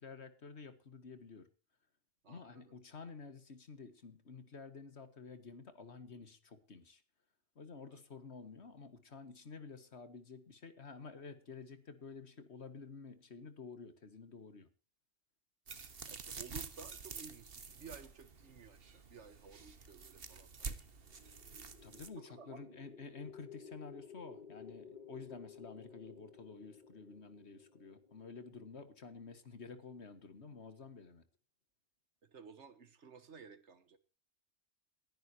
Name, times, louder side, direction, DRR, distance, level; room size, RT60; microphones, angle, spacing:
voice 1, 0.0-1.5 2.3-7.0 7.6-14.7 21.8-31.3, left 4 dB, 70° left, 11 dB, 2.0 m, -51 dB
voice 2, 2.2-2.6 7.9-8.0 15.7-20.8 22.2-22.8 32.2-34.0, right 6 dB, 80° right, 13 dB, 1.7 m, -55 dB
sound 1, 15.7-22.1, right 5 dB, 55° right, 1.5 m, -48 dB
sound 2, 21.0-29.2, left 6 dB, 45° left, 2.0 m, -55 dB
28.5 x 10.5 x 2.9 m, 0.33 s
omnidirectional pair, 1.2 m